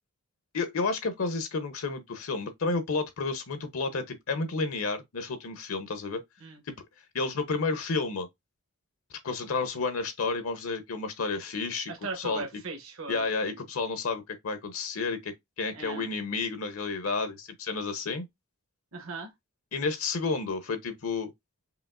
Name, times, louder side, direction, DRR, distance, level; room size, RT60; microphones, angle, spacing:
voice 1, 0.5-6.2 6.7-6.8 7.1-8.3 9.2-12.5 13.1-18.3 19.7-21.3, left 4 dB, 70° left, 0.7 m, -31 dB
voice 2, 11.9-13.3 15.7-16.1 18.9-19.3, right 3 dB, 70° right, 1.0 m, -38 dB
5.0 x 2.9 x 2.4 m
head